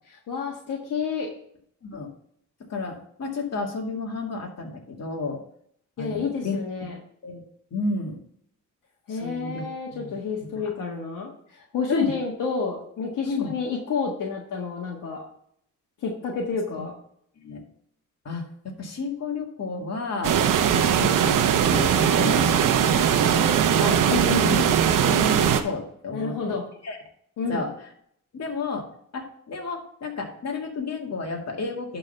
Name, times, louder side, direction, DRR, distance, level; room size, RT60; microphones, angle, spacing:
voice 1, 0.1-1.3 6.0-7.0 9.1-15.2 16.0-16.9 24.1-24.5 26.1-26.6 27.4-27.6, left 5 dB, 75° left, 0 dB, 1.5 m, -29 dB
voice 2, 2.6-5.4 6.0-6.6 7.2-7.4 7.7-8.2 9.1-10.2 10.6-10.7 11.9-12.1 13.3-13.5 16.8-16.9 17.4-17.6 18.2-20.4 20.7-24.1 24.4-24.7 25.0-26.4 26.8-27.0 27.5-27.7 28.3-28.9 29.1-32.0, left 3 dB, 55° left, 1 dB, 2.1 m, -32 dB
sound 1, 20.2-25.6, right 9 dB, 80° right, 0.9 m, -20 dB
11.0 x 3.9 x 5.6 m, 0.68 s
cardioid pair, 70°, 32 cm